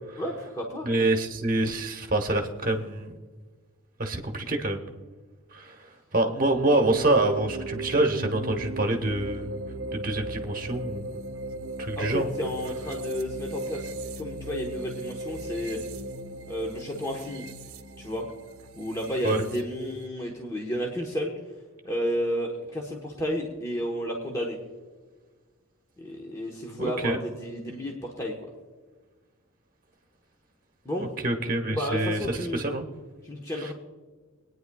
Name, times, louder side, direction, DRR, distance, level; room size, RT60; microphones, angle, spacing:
voice 1, 0.2-1.1 12.0-13.9 14.2-15.8 16.5-17.4 18.0-18.3 18.7-21.3 21.8-24.6 26.0-28.3 30.8-31.1 31.7-32.6 33.2-33.7, equal, 15° left, -1 dB, 1.1 m, -32 dB
voice 2, 0.8-3.1 4.0-4.8 5.5-5.8 6.1-9.5 9.9-11.2 11.8-12.3 19.2-19.4 26.8-27.2 31.0-32.8 33.6-33.7, right 2 dB, 40° right, 4 dB, 1.1 m, -26 dB
sound 1, 6.5-20.1, right 2 dB, 80° right, 0.7 m, -36 dB
24.0 x 9.5 x 2.3 m, 1.4 s
head